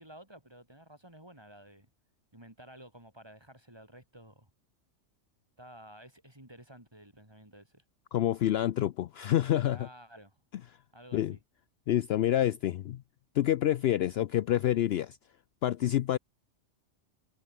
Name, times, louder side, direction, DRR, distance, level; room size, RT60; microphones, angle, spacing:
voice 1, 0.0-1.9 2.3-4.5 5.6-7.8 9.7-10.3 10.9-11.4, right 1 dB, 20° right, 4.7 m, -52 dB
voice 2, 8.1-9.9 11.1-11.4 11.9-13.0 13.3-15.2 15.6-16.2, left 12 dB, 65° left, 0.7 m, -27 dB
omnidirectional pair, 1.2 m